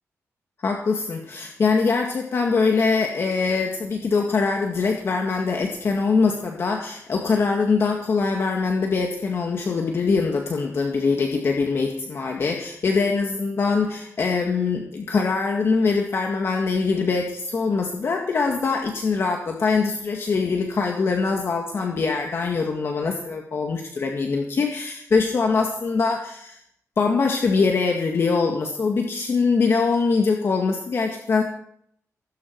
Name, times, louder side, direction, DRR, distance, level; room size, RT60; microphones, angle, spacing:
voice 1, 0.6-26.6 27.0-31.4, left 4 dB, 45° left, 2 dB, 1.9 m, -23 dB
18.0 x 16.0 x 4.6 m, 0.69 s
wide cardioid pair, 165°, 6 cm